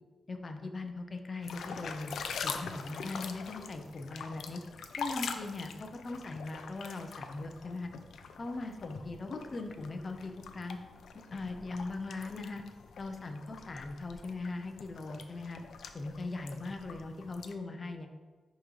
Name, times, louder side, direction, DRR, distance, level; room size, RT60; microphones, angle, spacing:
voice 1, 0.3-2.1 2.4-4.6 5.0-7.9 8.4-10.8 11.3-12.6 13.0-15.6 15.9-18.1, left 3 dB, 30° left, 6 dB, 0.6 m, -40 dB
sound 1, 1.4-17.5, left 5 dB, 85° left, 0.5 m, -44 dB
10.5 x 3.7 x 3.2 m, 1.4 s
wide cardioid pair, 175°, 0 cm